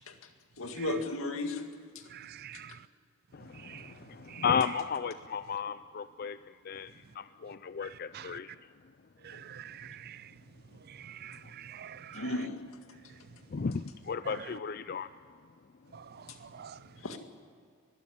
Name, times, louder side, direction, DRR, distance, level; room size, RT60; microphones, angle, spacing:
voice 1, 0.6-1.6 12.1-12.6 17.0-17.2, left 2 dB, 80° left, 2.0 m, -34 dB
voice 2, 2.1-2.9 3.5-3.9 4.3-4.4 8.1-8.3 9.2-10.4 10.8-12.3 14.2-14.5 15.9-16.9, right 9 dB, 45° right, 0.4 m, -47 dB
voice 3, 3.3-8.7 11.3-11.5 13.5-15.1, left 6 dB, 45° left, 0.4 m, -34 dB
21.5 x 12.5 x 10.0 m
head